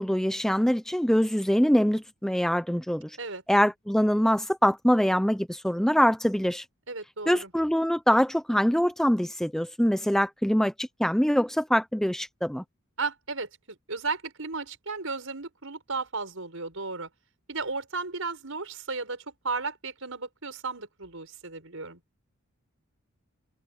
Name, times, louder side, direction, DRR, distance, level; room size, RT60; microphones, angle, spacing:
voice 1, 0.0-3.2 3.5-6.6 7.3-12.6, equal, ahead, 0.6 m, -24 dB
voice 2, 6.9-7.5 13.0-17.1 17.5-22.0, right 4 dB, 65° right, 6.6 m, -34 dB
head